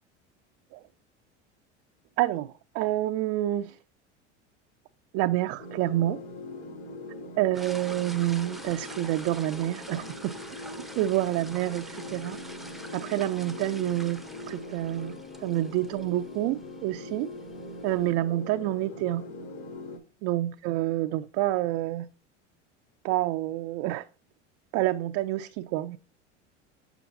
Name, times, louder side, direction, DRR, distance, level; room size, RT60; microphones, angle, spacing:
voice 1, 2.2-3.8 5.1-6.2 7.4-10.4 11.0-12.4 12.9-15.1 15.4-17.3 17.8-19.2 20.2-22.1 23.0-24.0 24.7-26.0, right 15 dB, 55° right, 0.5 m, -28 dB
sound 1, 5.6-20.0, left 2 dB, 65° left, 3.8 m, -41 dB
sound 2, 7.5-18.1, right 1 dB, ahead, 0.7 m, -46 dB
7.1 x 6.9 x 2.6 m
hypercardioid pair, 85°, 36 cm